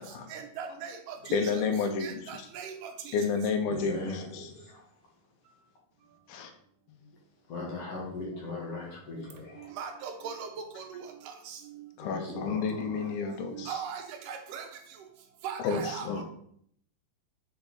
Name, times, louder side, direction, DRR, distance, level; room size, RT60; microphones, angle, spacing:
voice 1, 0.3-1.6 2.0-3.1 9.8-11.6 12.3-12.4 12.9-13.0 13.5-14.7 15.4-16.2, right 7 dB, 75° right, 5 dB, 2.3 m, -39 dB
voice 2, 1.3-2.5 3.1-4.5 6.3-6.5 12.0-13.7 15.6-16.2, left 5 dB, 85° left, 6 dB, 2.6 m, -31 dB
voice 3, 3.7-4.8 7.5-9.7 12.0-13.4 15.7-16.2, left 3 dB, 55° left, -2 dB, 2.2 m, -39 dB
6.6 x 4.4 x 4.0 m, 0.66 s
omnidirectional pair, 4.0 m